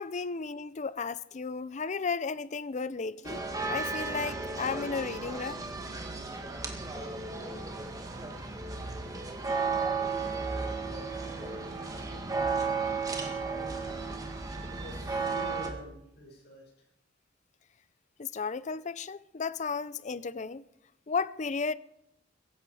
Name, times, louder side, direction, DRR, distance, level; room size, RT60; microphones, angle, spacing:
voice 1, 0.0-5.6 18.2-20.6 21.1-21.8, left 4 dB, 40° left, 0.5 m, -34 dB
sound 1, 3.2-15.7, right 4 dB, 20° right, 1.9 m, -34 dB
voice 2, 6.9-13.8 14.7-16.7, left 1 dB, 55° left, 6.6 m, -51 dB
16.0 x 15.5 x 4.8 m
head